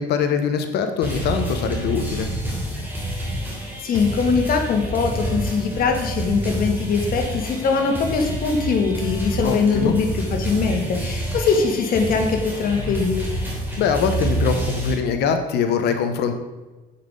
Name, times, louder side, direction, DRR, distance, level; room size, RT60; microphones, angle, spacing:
voice 1, 0.0-2.3 9.4-9.9 13.8-16.3, left 6 dB, 75° left, 7 dB, 0.9 m, -22 dB
sound 1, 1.0-14.9, right 1 dB, 10° right, 3.0 m, -28 dB
voice 2, 3.8-13.3, left 5 dB, 60° left, 4 dB, 1.7 m, -22 dB
8.1 x 5.7 x 5.2 m, 1.2 s
cardioid pair, 110°, 17 cm